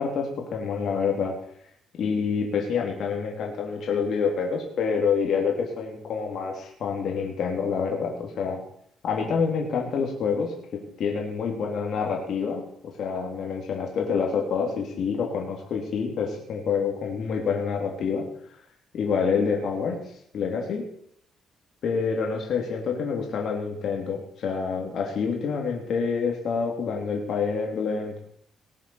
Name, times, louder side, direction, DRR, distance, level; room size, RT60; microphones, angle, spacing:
voice 1, 0.0-1.4 2.0-8.6 9.0-18.3 18.9-20.0 20.3-20.9 21.8-28.2, left 5 dB, 55° left, 1 dB, 2.9 m, -27 dB
19.0 x 7.5 x 7.0 m, 0.68 s
cardioid pair, 155°, 0 cm